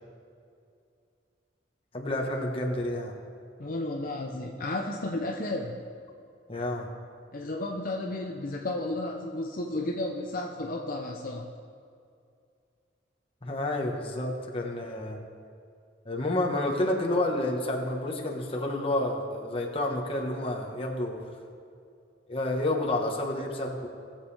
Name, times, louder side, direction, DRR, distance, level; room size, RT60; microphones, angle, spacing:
voice 1, 1.9-3.2 6.5-6.9 13.4-15.2 16.0-21.2 22.3-23.9, left 1 dB, 30° left, 0 dB, 1.3 m, -29 dB
voice 2, 3.6-5.8 7.3-11.6, left 2 dB, 50° left, 0 dB, 0.7 m, -33 dB
19.0 x 7.3 x 3.4 m, 2.4 s
head